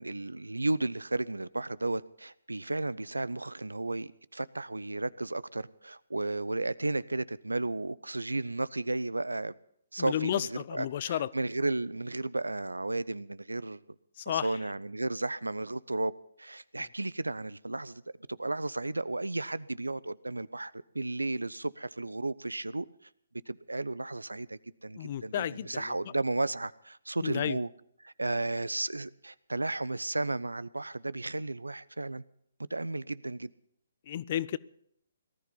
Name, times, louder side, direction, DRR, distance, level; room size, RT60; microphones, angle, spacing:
voice 1, 0.0-9.5 9.9-13.8 14.3-16.1 16.4-18.0 18.3-22.9 23.5-27.7 28.0-32.2 32.7-33.5, right 2 dB, 85° right, 20 dB, 0.6 m, -33 dB
voice 2, 10.0-11.3 14.2-14.6 25.0-25.9 27.2-27.6 34.1-34.6, left 11 dB, 40° left, 20 dB, 0.6 m, -32 dB
18.5 x 13.0 x 5.5 m, 0.69 s
figure-of-eight pair, 135°, 0 cm